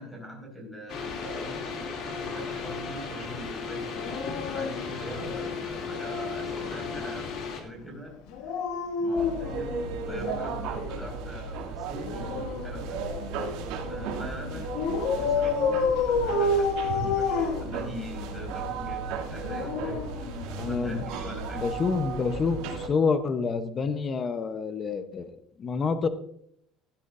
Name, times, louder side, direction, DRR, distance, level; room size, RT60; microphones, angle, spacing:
voice 1, 0.0-1.6 2.3-4.2 4.5-7.3 7.6-8.1 8.4-8.6 9.0-13.0 13.9-20.2 20.5-21.6, equal, 5° left, 0 dB, 5.1 m, -41 dB
sound 1, 0.9-7.6, left 5 dB, 50° left, 2.7 m, -35 dB
Dog, 4.0-5.8 8.3-10.7 11.9-13.6 14.7-18.3 19.3-20.9 22.2-22.4, left 4 dB, 80° left, 1.8 m, -30 dB
sound 2, 9.1-22.9, right 4 dB, 75° right, 2.6 m, -35 dB
voice 2, 20.6-21.0 21.5-26.1, left 5 dB, 25° left, 10 dB, 0.8 m, -28 dB
16.0 x 12.0 x 2.6 m, 0.66 s
cardioid pair, 170°, 0 cm